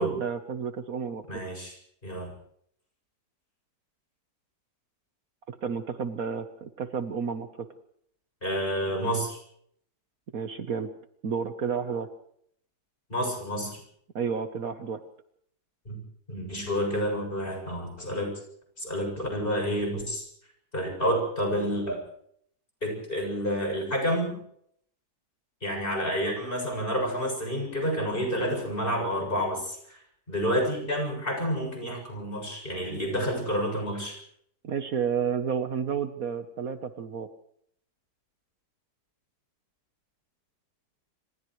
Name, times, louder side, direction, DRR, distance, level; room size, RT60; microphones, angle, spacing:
voice 1, 0.0-1.4 5.5-7.7 10.3-10.9 11.2-12.1 14.1-15.0 34.6-37.3, right 6 dB, 60° right, 8 dB, 1.5 m, -31 dB
voice 2, 1.3-1.8 2.0-2.3 8.4-9.4 13.1-13.8 15.9-16.0 16.3-18.3 18.8-20.2 20.7-22.0 22.8-24.3 25.6-30.0 30.3-34.2, equal, 30° left, 2 dB, 7.7 m, -29 dB
30.0 x 27.5 x 3.2 m, 0.68 s
omnidirectional pair, 1.8 m